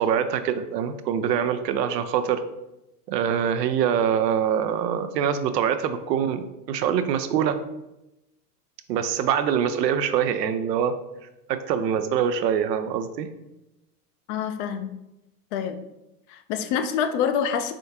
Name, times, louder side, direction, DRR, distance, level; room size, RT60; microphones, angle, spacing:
voice 1, 0.0-2.4 3.1-7.6 8.9-10.9 11.5-13.3, right 8 dB, 85° right, 10 dB, 0.5 m, -24 dB
voice 2, 14.3-14.9 15.5-15.8 16.3-17.7, left 7 dB, 50° left, 9 dB, 0.4 m, -26 dB
3.5 x 3.4 x 2.8 m, 0.92 s
hypercardioid pair, 105°, 48 cm